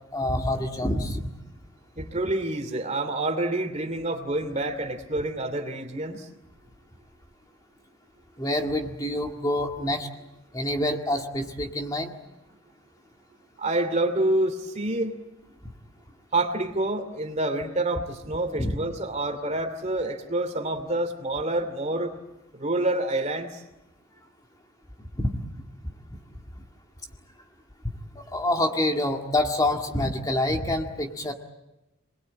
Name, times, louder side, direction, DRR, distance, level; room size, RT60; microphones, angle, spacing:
voice 1, 0.1-1.3 8.4-10.1 10.5-12.1 18.6-18.8 25.2-25.3 26.1-26.2 28.2-31.3, left 1 dB, 20° left, 3 dB, 1.9 m, -26 dB
voice 2, 2.0-6.3 13.6-15.2 16.3-22.1 22.5-23.6, right 2 dB, 35° right, 8 dB, 2.7 m, -27 dB
28.0 x 21.0 x 8.7 m, 0.94 s
head